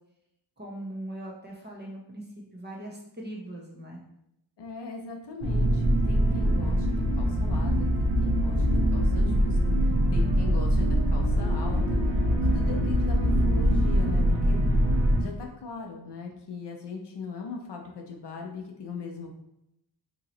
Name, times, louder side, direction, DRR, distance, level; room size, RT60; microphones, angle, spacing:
voice 1, 0.6-2.3 2.5-4.0, right 1 dB, 20° right, -3 dB, 0.8 m, -40 dB
voice 2, 4.6-12.0 12.5-14.6 15.2-19.4, left 4 dB, 65° left, 2 dB, 0.7 m, -39 dB
sound 1, 5.4-15.2, equal, 80° right, 1.2 m, -23 dB
3.0 x 2.8 x 3.9 m, 0.83 s
wide cardioid pair, 130°, 45 cm